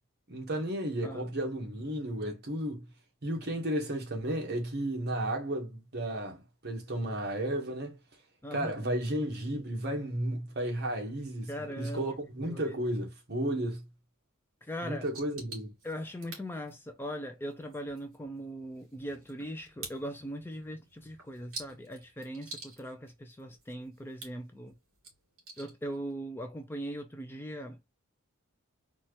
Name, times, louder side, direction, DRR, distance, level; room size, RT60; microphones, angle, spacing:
voice 1, 0.3-2.9 3.2-8.0 8.5-13.8 14.8-15.7, right 1 dB, 50° right, 1.2 m, -33 dB
voice 2, 1.0-1.3 8.4-8.9 11.5-12.2 12.5-12.8 14.6-15.0 15.8-24.8 25.6-27.9, equal, 10° left, 0.4 m, -40 dB
sound 1, 15.0-26.1, right 3 dB, 65° right, 2.7 m, -50 dB
4.3 x 2.4 x 2.9 m
head